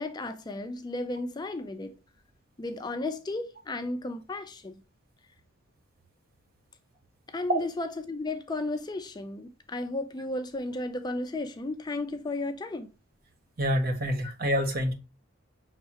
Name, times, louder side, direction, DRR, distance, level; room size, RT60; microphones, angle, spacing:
voice 1, 0.0-1.9 2.6-4.8 7.3-12.9, left 2 dB, 20° left, 0.4 m, -34 dB
voice 2, 13.6-14.9, equal, 50° right, 1.0 m, -26 dB
5.8 x 3.1 x 2.9 m
head